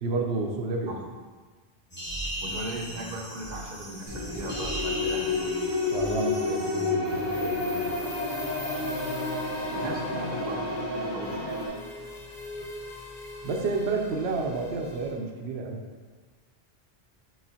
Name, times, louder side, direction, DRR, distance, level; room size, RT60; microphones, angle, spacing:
voice 1, 0.0-1.0 5.9-7.9 13.4-15.8, right 3 dB, 70° right, 2 dB, 0.9 m, -30 dB
sound 1, 1.9-6.9, right 1 dB, 10° left, 0.7 m, -37 dB
voice 2, 2.4-5.4 9.7-11.5, right 1 dB, 45° right, -1 dB, 0.7 m, -38 dB
sound 2, 4.1-11.7, left 3 dB, 90° left, 1.6 m, -30 dB
sound 3, 7.0-15.1, left 2 dB, 45° left, 0.8 m, -41 dB
4.7 x 3.8 x 2.8 m, 1.4 s
omnidirectional pair, 1.1 m